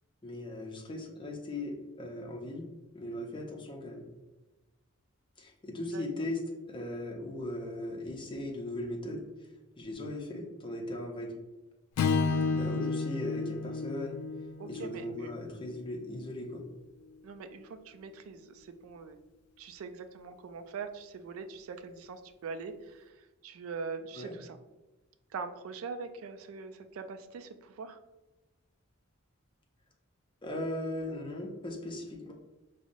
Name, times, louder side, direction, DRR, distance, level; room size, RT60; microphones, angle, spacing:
voice 1, 0.2-2.7 2.9-4.1 5.4-6.4 6.7-9.3 9.8-11.4 12.5-14.2 14.7-16.7 24.2-24.3 30.4-32.3, left 1 dB, 20° left, 2 dB, 0.5 m, -38 dB
Strum, 12.0-16.3, left 4 dB, 85° left, 0.3 m, -32 dB
voice 2, 14.6-15.3 17.2-19.2 19.6-24.6 25.3-28.0, right 5 dB, 75° right, 9 dB, 0.3 m, -42 dB
5.0 x 2.0 x 2.6 m, 1.1 s
head